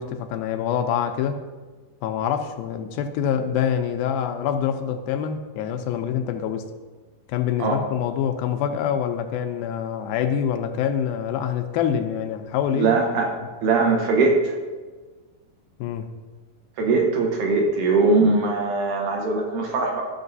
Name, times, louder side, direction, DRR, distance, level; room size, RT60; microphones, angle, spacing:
voice 1, 0.0-1.4 2.0-6.7 7.3-12.9 15.8-16.1, left 8 dB, 85° left, 6 dB, 2.4 m, -25 dB
voice 2, 12.7-13.3 13.6-14.5 16.8-20.1, right 3 dB, 65° right, 1 dB, 2.3 m, -21 dB
14.5 x 6.5 x 2.7 m, 1.3 s
omnidirectional pair, 4.3 m